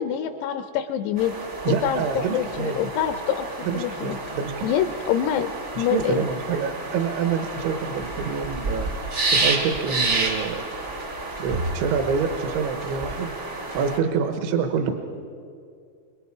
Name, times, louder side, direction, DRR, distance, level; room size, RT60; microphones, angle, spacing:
voice 1, 0.0-1.3 1.7-3.5 3.7-4.2 4.6-5.5 5.8-6.3, left 9 dB, 80° left, 8 dB, 2.4 m, -25 dB
sound 1, 1.2-14.0, right 2 dB, 55° right, 0.8 m, -30 dB
voice 2, 1.6-2.8 3.6-4.7 5.8-8.9 9.3-10.7 11.4-14.9, right 6 dB, 80° right, 6 dB, 3.4 m, -27 dB
26.0 x 22.0 x 4.8 m, 2.3 s
omnidirectional pair, 5.4 m